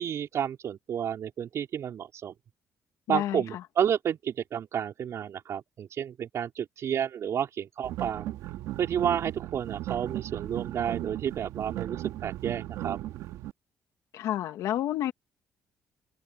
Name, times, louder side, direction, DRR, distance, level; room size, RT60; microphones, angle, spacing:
voice 1, 0.0-2.3 3.1-8.3 8.8-13.0, right 9 dB, 60° right, 4.6 m, -31 dB
voice 2, 3.1-3.6 14.1-15.1, left 12 dB, 80° left, 2.2 m, -30 dB
sound 1, 7.8-13.5, right 14 dB, 85° right, 2.7 m, -36 dB
cardioid pair, 80°, 6 cm